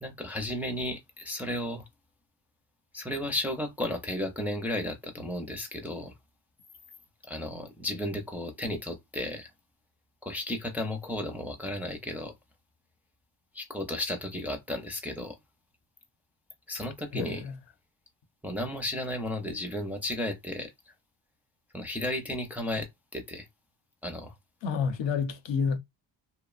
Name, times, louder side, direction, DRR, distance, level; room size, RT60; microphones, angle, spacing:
voice 1, 0.0-1.9 2.9-6.1 7.3-9.5 10.2-12.3 13.5-15.4 16.7-17.4 18.4-20.7 21.7-23.5 24.0-24.3, left 1 dB, 5° right, 0.4 m, -34 dB
voice 2, 17.1-17.5 24.6-25.8, left 6 dB, 70° left, 0.7 m, -29 dB
2.6 x 2.1 x 2.3 m
cardioid pair, 90°, 47 cm